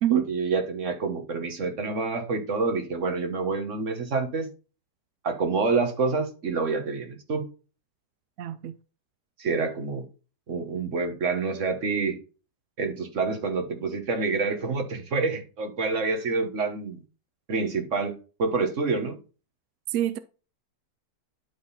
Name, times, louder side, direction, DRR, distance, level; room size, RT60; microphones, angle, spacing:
voice 1, 0.1-4.5 5.2-7.4 9.4-10.0 10.5-12.2 12.8-17.0 17.5-19.2, right 4 dB, 50° right, 1.6 m, -27 dB
voice 2, 8.4-8.7 19.9-20.2, right 12 dB, 70° right, 0.7 m, -25 dB
11.5 x 3.9 x 4.1 m
omnidirectional pair, 1.8 m